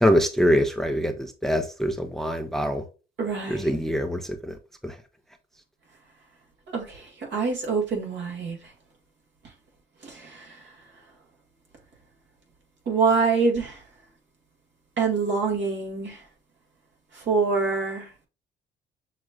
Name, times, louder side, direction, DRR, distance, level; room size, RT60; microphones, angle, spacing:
voice 1, 0.0-2.8 3.5-4.5 4.8-4.9, equal, ahead, 0.6 m, -24 dB
voice 2, 3.2-3.7 6.7-8.6 10.0-10.6 12.9-13.8 15.0-16.2 17.1-18.1, right 4 dB, 65° right, 2.2 m, -25 dB
6.4 x 3.0 x 2.3 m
cardioid pair, 90°, 20 cm